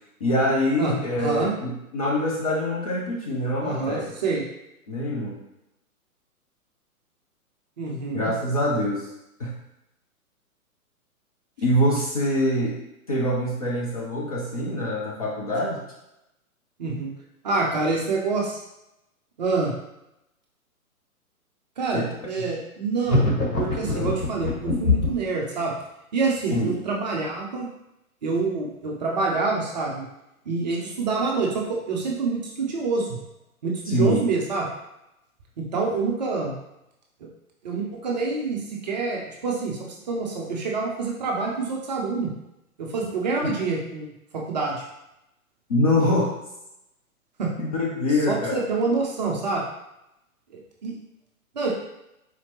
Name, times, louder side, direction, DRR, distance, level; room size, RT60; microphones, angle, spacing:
voice 1, 0.2-4.1 4.9-5.4 8.1-9.0 9.4-9.5 11.6-12.8 13.1-15.8 21.9-22.1 22.4-22.5 23.8-24.2 26.5-26.7 33.9-34.2 43.4-43.5 45.7-46.3 47.6-48.6, left 1 dB, 25° left, -5 dB, 0.4 m, -24 dB
voice 2, 0.8-1.5 3.6-4.4 7.8-8.3 16.8-17.1 17.4-18.6 19.4-19.7 21.8-23.3 23.6-25.7 26.1-27.7 28.2-30.1 30.5-33.1 33.6-34.7 35.6-36.6 37.2-37.3 37.6-39.8 40.1-42.3 42.8-44.8 47.4-47.5 48.3-49.6 50.8-50.9 51.5-51.7, right 4 dB, 30° right, -2 dB, 0.5 m, -26 dB
sound 1, 23.1-25.3, left 3 dB, 85° left, 1.3 m, -23 dB
4.3 x 2.8 x 2.9 m, 0.88 s
figure-of-eight pair, 120°, 44 cm